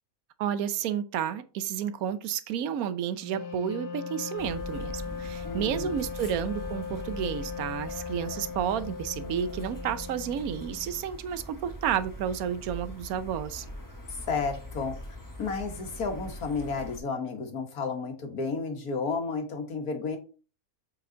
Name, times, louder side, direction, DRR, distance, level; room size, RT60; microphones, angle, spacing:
voice 1, 0.4-13.7, right 9 dB, 80° right, 12 dB, 1.2 m, -31 dB
Wind instrument woodwind instrument, 3.2-11.0, left 6 dB, 60° left, 1.6 m, -39 dB
sound 1, 4.4-17.0, equal, 15° left, 1.3 m, -42 dB
voice 2, 5.4-6.0 14.1-15.0 15.4-20.2, left 4 dB, 85° left, 5 dB, 1.8 m, -32 dB
7.7 x 4.6 x 3.8 m, 0.36 s
omnidirectional pair, 1.5 m